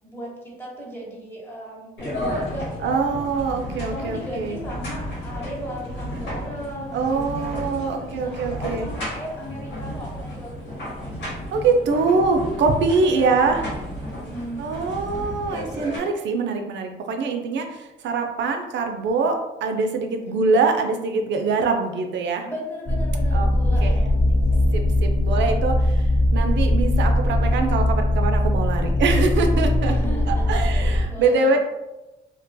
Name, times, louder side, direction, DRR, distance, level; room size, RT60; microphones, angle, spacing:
voice 1, 0.0-3.3 3.8-10.8 11.0-11.4 11.7-11.8 12.2-12.3 13.0-13.6 14.1-14.8 20.3-20.5 22.4-24.9 29.8-31.6, equal, 10° left, -4 dB, 0.9 m, -37 dB
sound 1, 2.0-16.0, equal, 75° left, 1.3 m, -33 dB
voice 2, 2.8-4.6 6.9-8.9 11.5-13.6 14.6-19.4 19.6-22.5 23.3-23.5 23.8-24.0 24.7-29.9 30.3-31.6, right 4 dB, 65° right, 4 dB, 0.5 m, -23 dB
sound 2, 22.9-31.0, left 1 dB, 30° left, 0.4 m, -20 dB
2.4 x 2.2 x 2.6 m, 1.0 s
cardioid pair, 90°, 20 cm